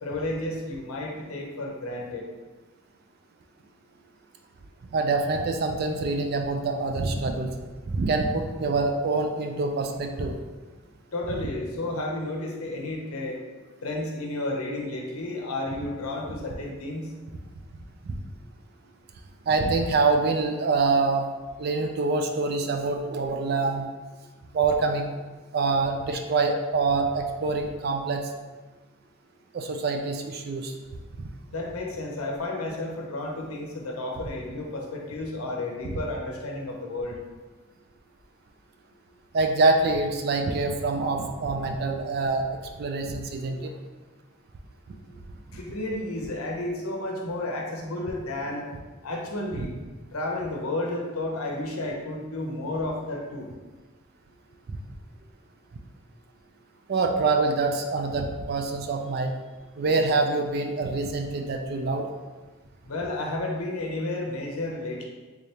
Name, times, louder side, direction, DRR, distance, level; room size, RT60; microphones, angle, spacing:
voice 1, 0.0-2.3 11.1-13.4 13.8-17.1 31.5-37.2 43.5-43.6 45.5-48.7 49.0-49.7 50.1-53.5 62.9-65.1, left 2 dB, 85° left, 0 dB, 0.7 m, -32 dB
voice 2, 4.9-7.5 7.9-10.4 18.1-18.2 19.5-21.3 21.6-23.9 24.5-25.1 25.5-28.3 29.5-30.7 39.3-42.4 42.8-43.7 49.5-49.7 56.9-59.3 59.8-62.1, right 3 dB, 45° right, 4 dB, 0.3 m, -25 dB
3.6 x 3.3 x 2.8 m, 1.3 s
head